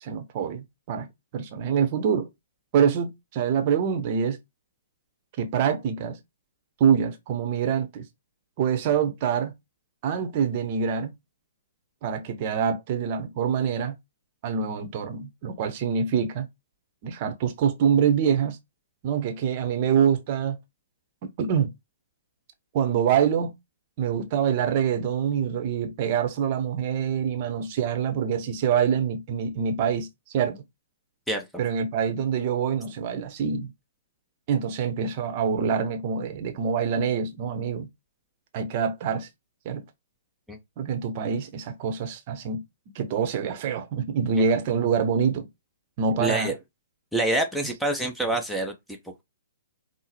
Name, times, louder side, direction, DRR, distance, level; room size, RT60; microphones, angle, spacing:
voice 1, 0.0-1.1 1.3-2.3 2.7-4.4 5.4-6.2 6.8-8.0 8.6-9.5 10.0-11.1 12.0-13.9 14.4-16.5 17.0-18.6 19.0-20.6 21.2-21.7 22.7-23.5 24.0-30.6 31.6-33.7 34.5-37.9 38.5-39.3 39.6-39.8 40.8-42.6 42.9-45.5 46.0-46.5, right 7 dB, 35° right, 0.7 m, -25 dB
voice 2, 46.2-46.5 47.1-49.2, right 1 dB, ahead, 0.6 m, -27 dB
5.4 x 2.0 x 3.1 m
figure-of-eight pair, 120°, 0 cm